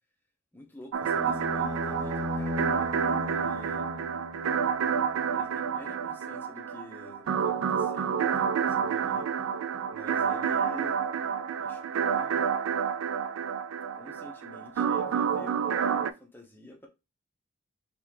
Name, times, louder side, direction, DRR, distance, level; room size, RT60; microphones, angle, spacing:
voice 1, 0.5-3.8 5.3-9.5 9.9-11.0 11.6-12.5 13.2-13.4 14.0-16.9, left 1 dB, 10° left, 0.8 m, -49 dB
sound 1, 0.9-16.1, right 7 dB, 70° right, 0.3 m, -29 dB
sound 2, 1.0-5.3, left 1 dB, 15° right, 0.6 m, -36 dB
3.7 x 3.3 x 3.2 m
head